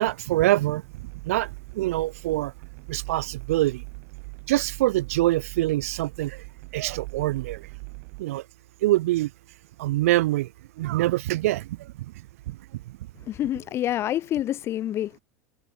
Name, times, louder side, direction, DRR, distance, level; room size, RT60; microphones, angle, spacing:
voice 1, 0.0-2.5 2.9-3.8 4.5-6.4 6.7-7.7 8.2-8.4 8.8-9.3 9.8-10.5 10.8-11.9 12.5-12.6 12.9-13.0, right 16 dB, 85° right, 3.1 m, -25 dB
sound 1, 0.8-8.2, right 37 dB, 60° right, 4.6 m, -41 dB
voice 2, 13.3-15.2, left 12 dB, 35° left, 1.2 m, -27 dB
supercardioid pair, 140°, 8 cm